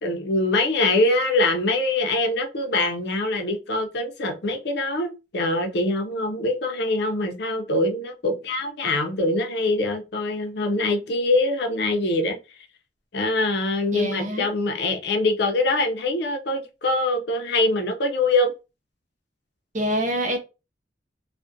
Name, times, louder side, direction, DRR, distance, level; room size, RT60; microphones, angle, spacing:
voice 1, 0.0-12.4 13.1-18.5, left 2 dB, 65° left, 0.5 m, -23 dB
voice 2, 13.9-14.5 19.7-20.4, equal, 45° right, 0.6 m, -25 dB
2.3 x 2.1 x 2.5 m
head